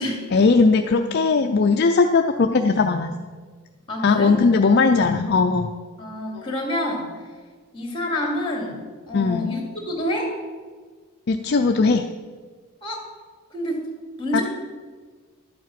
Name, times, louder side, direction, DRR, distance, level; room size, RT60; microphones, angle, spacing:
voice 1, 0.3-3.3 4.0-5.7 6.3-6.5 9.1-9.5 11.3-12.0 14.3-14.4, left 4 dB, 50° left, 5 dB, 0.4 m, -19 dB
voice 2, 3.9-4.3 6.0-7.1 7.7-8.8 9.1-10.3 12.8-13.1 13.5-13.8 14.2-14.4, left 1 dB, 20° left, 1 dB, 2.5 m, -27 dB
12.0 x 7.6 x 5.9 m, 1.5 s
head